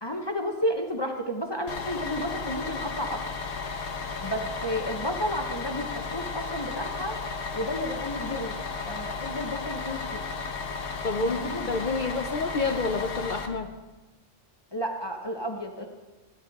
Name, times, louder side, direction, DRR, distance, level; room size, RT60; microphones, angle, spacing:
voice 1, 0.0-3.2 4.2-7.2 7.5-8.6 8.8-10.2 11.2-11.7 14.7-15.9, equal, 25° left, 2 dB, 0.8 m, -32 dB
Bus, 1.7-13.5, left 4 dB, 70° left, 1.2 m, -34 dB
voice 2, 11.0-13.7, left 4 dB, 50° left, 5 dB, 0.7 m, -29 dB
16.5 x 10.0 x 3.6 m, 1.2 s
omnidirectional pair, 1.2 m